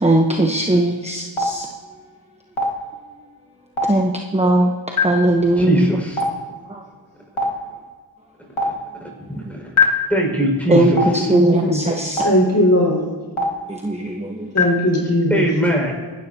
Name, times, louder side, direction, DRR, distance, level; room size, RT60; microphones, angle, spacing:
voice 1, 0.0-1.6 3.9-4.7 5.0-5.9 10.7-12.2 13.8-14.5, right 1 dB, 15° right, 1 dB, 1.0 m, -18 dB
Stream, 1.4-1.5 2.6-2.7 3.8-3.9 5.0-5.1 6.2-6.3 7.4-7.5 8.6-8.7 9.8-9.9 11.0-11.1 12.2-12.3 13.4-13.5 14.6-14.7, left 4 dB, 85° left, 2.2 m, -17 dB
voice 2, 5.6-6.2 9.3-9.6 10.1-11.3 15.3-15.9, right 1 dB, 5° left, -1 dB, 5.6 m, -21 dB
voice 3, 10.9-11.8 12.2-13.0 14.5-15.5, left 1 dB, 35° left, -2 dB, 5.5 m, -18 dB
25.5 x 12.5 x 2.9 m, 1.4 s
wide cardioid pair, 65°, 48 cm